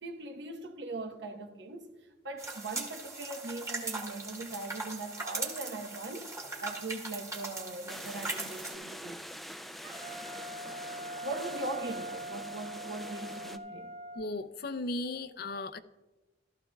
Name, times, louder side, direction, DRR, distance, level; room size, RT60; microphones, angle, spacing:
voice 1, 0.0-1.9 2.2-6.3 6.6-9.2 11.2-13.9, right 2 dB, 65° right, 1.0 m, -40 dB
sound 1, 2.4-8.7, right 3 dB, 15° right, 1.4 m, -39 dB
sound 2, 7.9-13.6, equal, ahead, 0.3 m, -45 dB
Wind instrument woodwind instrument, 9.8-14.3, right 1 dB, 40° right, 1.7 m, -42 dB
voice 2, 14.1-15.8, left 2 dB, 55° left, 0.5 m, -36 dB
15.0 x 12.5 x 2.3 m
head